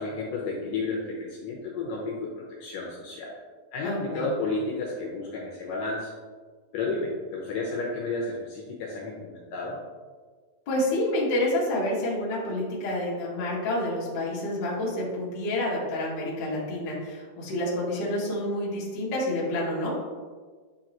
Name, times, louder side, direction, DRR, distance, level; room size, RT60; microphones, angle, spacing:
voice 1, 0.0-3.3 3.7-6.1 6.7-9.8, left 3 dB, 75° left, -3 dB, 2.1 m, -32 dB
voice 2, 3.8-4.3 10.7-19.9, left 1 dB, 50° left, -6 dB, 1.4 m, -28 dB
9.6 x 3.7 x 3.0 m, 1.5 s
omnidirectional pair, 4.5 m